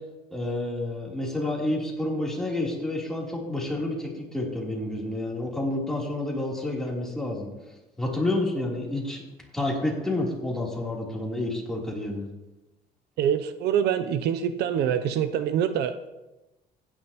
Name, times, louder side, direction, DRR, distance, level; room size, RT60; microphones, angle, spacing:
voice 1, 0.3-7.5 8.0-9.2 9.5-12.3, left 1 dB, 5° left, -3 dB, 3.5 m, -29 dB
voice 2, 13.2-16.1, right 9 dB, 80° right, 10 dB, 0.7 m, -25 dB
16.0 x 10.0 x 3.0 m, 1.0 s
cardioid pair, 110°, 17 cm